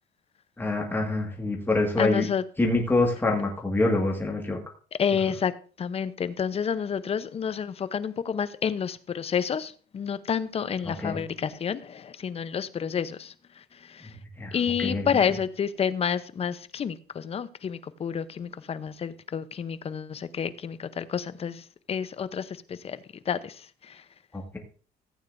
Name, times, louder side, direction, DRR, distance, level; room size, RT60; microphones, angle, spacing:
voice 1, 0.6-2.3 2.6-4.6 11.0-11.2 14.4-15.1 24.3-24.6, left 2 dB, 10° left, 1.7 m, -26 dB
voice 2, 2.0-2.4 4.9-5.5 5.8-14.2 14.5-23.0 23.3-24.0, left 7 dB, 35° left, 0.7 m, -29 dB
15.5 x 8.8 x 2.6 m
cardioid pair, 110°, 17 cm